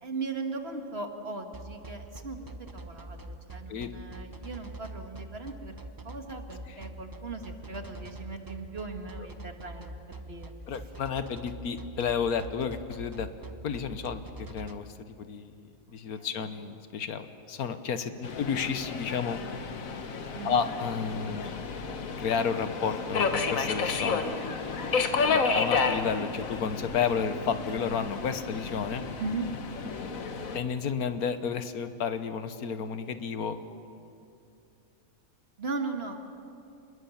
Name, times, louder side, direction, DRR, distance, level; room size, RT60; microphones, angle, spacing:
voice 1, 0.0-2.4 2.7-5.7 6.0-9.9 10.3-10.5 16.2-16.3 20.3-20.6 25.0-25.2 29.2-29.5 35.6-36.2, right 3 dB, 45° right, 4 dB, 1.9 m, -38 dB
sound 1, 1.5-14.7, right 1 dB, 15° right, 0.8 m, -43 dB
voice 2, 10.7-13.3 13.6-19.4 20.4-21.5 22.2-24.2 25.2-29.0 30.5-33.6 33.8-34.0, left 6 dB, 90° left, 10 dB, 1.6 m, -31 dB
Subway metro underground, 18.2-30.6, left 4 dB, 65° left, 1.6 m, -31 dB
27.0 x 21.0 x 7.2 m, 2.6 s
omnidirectional pair, 1.5 m